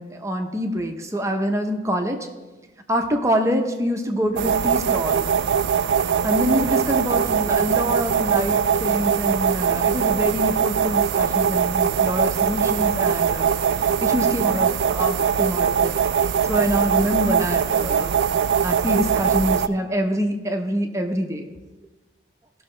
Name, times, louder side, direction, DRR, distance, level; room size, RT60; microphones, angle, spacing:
voice 1, 0.0-2.3 2.9-5.3 6.2-13.5 14.0-15.9 16.4-18.1 18.6-21.5, equal, 15° right, 4 dB, 0.8 m, -25 dB
sound 1, 4.4-19.7, right 7 dB, 65° right, 0.3 m, -21 dB
17.5 x 6.2 x 3.3 m, 1.1 s
head